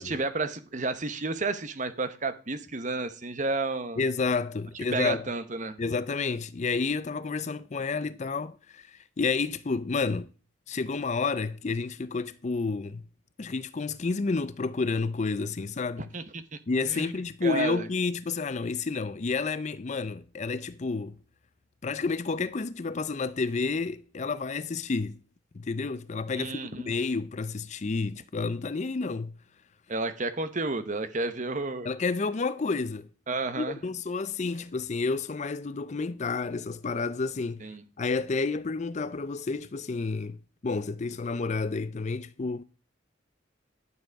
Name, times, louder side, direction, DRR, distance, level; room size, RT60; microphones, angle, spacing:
voice 1, 0.0-4.0 4.9-5.8 16.1-16.4 16.9-17.9 26.3-26.9 29.9-31.9 33.3-33.8 37.6-37.8, right 3 dB, 40° right, 1.1 m, -31 dB
voice 2, 4.0-5.2 5.8-10.3 10.7-13.0 13.4-16.1 16.7-21.2 21.8-25.2 25.5-26.6 26.9-29.3 31.8-33.1 33.6-37.7 38.0-42.6, left 4 dB, 35° left, 0.5 m, -30 dB
11.5 x 7.5 x 4.6 m
head